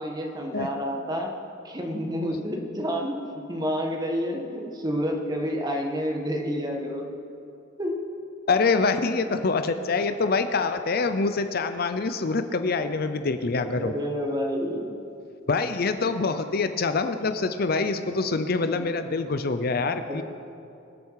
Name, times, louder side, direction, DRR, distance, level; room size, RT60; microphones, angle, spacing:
voice 1, 0.0-1.3 1.6-7.1 7.8-8.0 13.7-15.1 20.1-20.2, equal, 20° right, 1 dB, 1.5 m, -29 dB
voice 2, 8.5-13.9 15.5-20.2, left 4 dB, 50° left, 9 dB, 0.6 m, -25 dB
24.0 x 8.2 x 4.8 m, 2.7 s
head